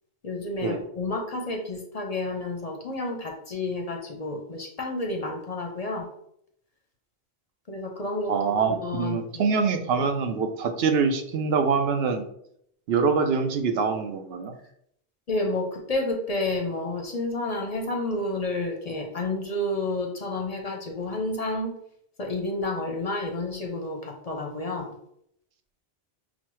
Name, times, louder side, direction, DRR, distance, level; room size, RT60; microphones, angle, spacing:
voice 1, 0.2-6.1 7.7-9.5 10.0-10.1 15.3-21.8 22.2-24.9, left 2 dB, 45° left, 2 dB, 0.6 m, -30 dB
voice 2, 8.3-12.2 12.9-14.5, right 5 dB, 75° right, 6 dB, 0.8 m, -24 dB
6.0 x 2.1 x 3.0 m, 0.72 s
omnidirectional pair, 1.0 m